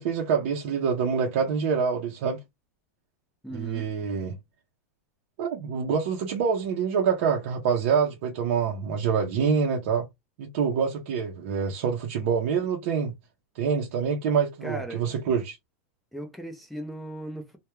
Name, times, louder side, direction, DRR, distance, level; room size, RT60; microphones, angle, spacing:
voice 1, 0.0-2.4 3.5-4.4 5.4-10.1 10.4-13.1 13.6-15.6, right 6 dB, 50° right, 0.6 m, -26 dB
voice 2, 3.4-3.9 14.6-15.1 16.1-17.6, right 1 dB, ahead, 0.4 m, -37 dB
2.2 x 2.1 x 3.0 m
supercardioid pair, 170°, 8 cm